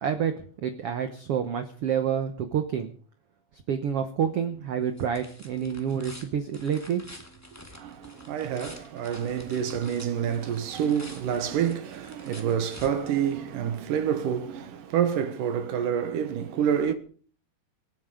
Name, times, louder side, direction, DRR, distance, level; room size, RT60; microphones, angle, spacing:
voice 1, 0.0-2.9 3.5-7.0, right 8 dB, 90° right, 1.2 m, -28 dB
sound 1, 4.3-13.7, left 1 dB, 5° left, 1.4 m, -48 dB
voice 2, 7.8-16.9, right 8 dB, 70° right, 2.7 m, -28 dB
25.5 x 9.6 x 5.0 m
omnidirectional pair, 4.2 m